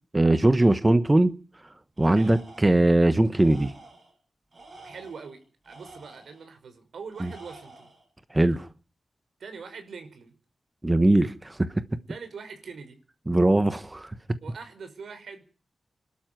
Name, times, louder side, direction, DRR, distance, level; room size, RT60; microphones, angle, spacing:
voice 1, 0.1-1.3 2.0-3.7 7.2-7.3 8.3-8.7 10.8-11.6 13.3-14.1, right 2 dB, 15° right, 1.0 m, -20 dB
Tools, 2.0-2.9 3.3-4.1 4.5-6.4 7.1-8.1, right 2 dB, 35° right, 4.8 m, -49 dB
voice 2, 2.1-2.4 4.8-5.4 5.7-7.9 9.4-10.3 12.1-13.0 14.4-15.4, right 5 dB, 85° right, 5.3 m, -43 dB
26.5 x 12.5 x 9.3 m
wide cardioid pair, 170°, 0 cm